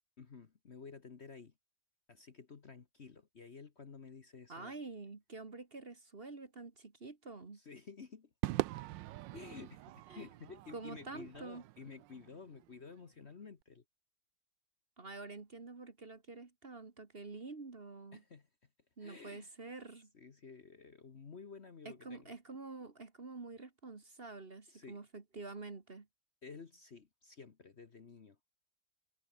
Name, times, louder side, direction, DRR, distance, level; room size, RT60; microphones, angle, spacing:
voice 1, 0.2-1.5 2.1-4.8 7.5-8.3 8.8-9.0 9.3-13.8 15.3-15.4 18.1-18.7 19.0-19.5 20.1-22.4 24.7-25.0 26.4-28.4, left 5 dB, 40° left, 1.4 m, -52 dB
voice 2, 4.5-7.6 10.1-10.3 10.7-11.6 15.0-18.2 19.0-20.1 21.8-26.1, right 3 dB, 35° right, 1.8 m, -48 dB
Crowd / Fireworks, 8.4-12.9, right 16 dB, 85° right, 1.3 m, -42 dB
omnidirectional pair, 2.0 m